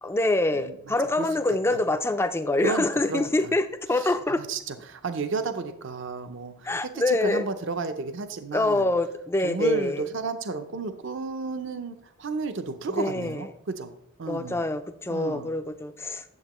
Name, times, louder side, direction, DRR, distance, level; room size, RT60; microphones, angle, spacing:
voice 1, 0.0-4.4 6.6-7.5 8.5-10.0 12.9-13.4 14.2-16.2, left 2 dB, 10° left, 11 dB, 0.3 m, -25 dB
voice 2, 0.5-1.3 1.7-1.8 2.6-3.5 3.9-6.7 7.1-8.9 9.4-13.9 14.2-14.6 15.1-15.5, right 4 dB, 55° right, 9 dB, 0.5 m, -32 dB
9.6 x 7.3 x 3.0 m, 0.75 s
head